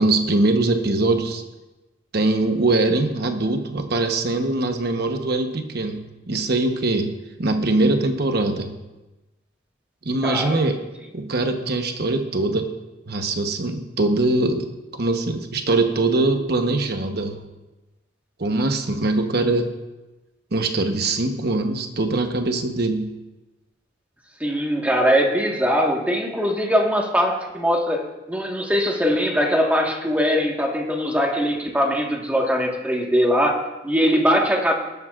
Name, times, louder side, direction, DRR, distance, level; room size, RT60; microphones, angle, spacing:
voice 1, 0.0-1.4 2.1-7.1 7.4-8.8 10.0-10.8 11.1-12.8 13.1-17.4 18.4-19.7 20.5-23.1, right 2 dB, 60° right, 5 dB, 1.0 m, -22 dB
voice 2, 10.2-10.6 24.4-34.7, equal, 10° right, 0 dB, 1.5 m, -21 dB
18.5 x 12.0 x 2.5 m, 1.1 s
head